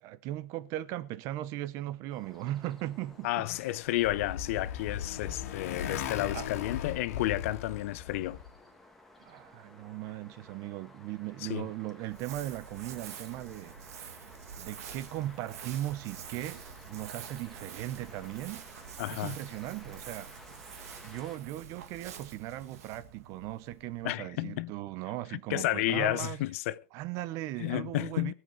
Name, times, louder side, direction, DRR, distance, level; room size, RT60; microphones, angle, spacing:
voice 1, 0.0-3.5 6.3-6.5 9.2-14.1 14.6-18.6 19.1-20.3 21.0-26.4 26.9-28.3, right 14 dB, 40° right, 0.8 m, -38 dB
sound 1, 2.1-21.4, left 2 dB, 5° left, 1.5 m, -55 dB
voice 2, 3.2-8.4 11.4-11.7 19.0-19.4 24.0-24.7 25.3-26.8 27.6-28.3, left 16 dB, 60° left, 0.6 m, -31 dB
Motorcycle, 3.5-8.5, left 9 dB, 80° left, 2.2 m, -38 dB
Crumpling crinkling, 12.0-24.5, right 8 dB, 85° right, 2.2 m, -47 dB
20.5 x 7.8 x 4.6 m
supercardioid pair, 160°, 8 cm